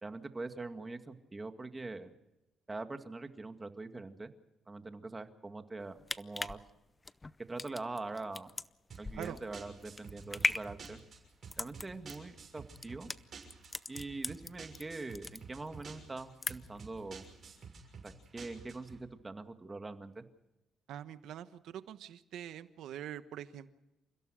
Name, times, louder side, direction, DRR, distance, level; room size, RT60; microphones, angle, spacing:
voice 1, 0.0-2.1 2.7-4.3 4.7-6.6 7.5-8.5 9.0-11.0 11.6-13.1 13.9-17.3 18.0-20.3, right 3 dB, 20° right, 7 dB, 2.1 m, -43 dB
sound 1, 5.8-14.8 15.1-15.9 16.2-16.9 17.2-17.3, left 3 dB, 20° left, 0.7 m, -38 dB
sound 2, 8.9-19.0, right 5 dB, 50° right, 6.5 m, -51 dB
voice 2, 20.9-23.7, right 10 dB, 80° right, 12 dB, 1.2 m, -44 dB
29.0 x 16.0 x 6.5 m, 0.96 s
cardioid pair, 90°, 0 cm